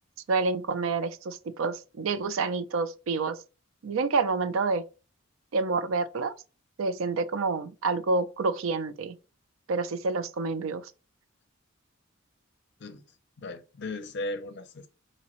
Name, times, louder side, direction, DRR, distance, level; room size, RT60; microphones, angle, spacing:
voice 1, 0.3-3.4 3.8-4.8 5.5-6.3 6.8-9.2 9.7-10.9, right 4 dB, 75° right, 0.4 m, -28 dB
voice 2, 13.4-14.9, left 2 dB, 55° left, 0.5 m, -36 dB
4.0 x 2.7 x 2.9 m
head